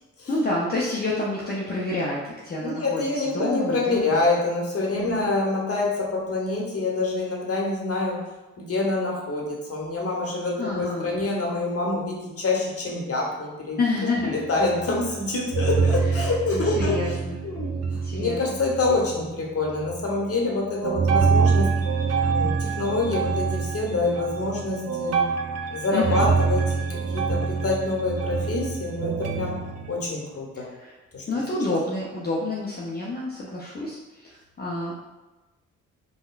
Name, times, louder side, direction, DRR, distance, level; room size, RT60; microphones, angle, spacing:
voice 1, 0.3-4.2 4.9-5.2 10.6-11.2 13.8-14.4 16.0-16.3 16.5-17.4 18.0-18.6 25.9-26.3 30.5-30.9 31.3-34.9, left 2 dB, 30° left, -5 dB, 0.6 m, -29 dB
voice 2, 2.6-8.2 8.6-13.8 14.2-17.0 17.4-21.7 22.3-25.2 25.7-29.6 29.9-30.7 31.1-31.2, left 3 dB, 45° left, -2 dB, 1.0 m, -26 dB
sound 1, 14.2-15.3 15.5-19.3 19.7-20.2 20.8-29.9, right 5 dB, 50° right, 0.5 m, -25 dB
3.5 x 2.2 x 2.4 m, 1.1 s
supercardioid pair, 50°, 34 cm